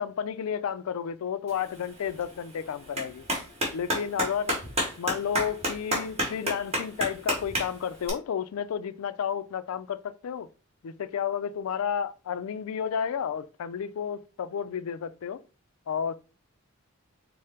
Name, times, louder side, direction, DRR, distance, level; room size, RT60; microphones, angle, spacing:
voice 1, 0.0-3.2 3.7-4.6 5.0-10.5 10.8-15.4 15.9-16.2, left 7 dB, 80° left, 0.4 m, -31 dB
Clapping, 1.5-8.1, equal, 30° right, 1.5 m, -32 dB
4.9 x 2.1 x 4.3 m
head